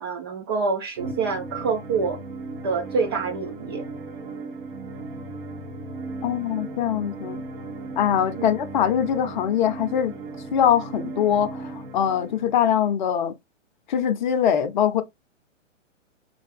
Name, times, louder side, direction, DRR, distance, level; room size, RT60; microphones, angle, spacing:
voice 1, 0.0-2.2 2.6-3.8 8.4-8.6, right 4 dB, 20° right, 0.4 m, -26 dB
sound 1, 1.0-12.9, right 3 dB, 40° right, 1.5 m, -37 dB
voice 2, 6.2-7.4 8.0-10.1 10.5-13.3 13.9-15.0, left 9 dB, 40° left, 0.7 m, -22 dB
5.7 x 2.7 x 3.3 m
figure-of-eight pair, 120°, 38 cm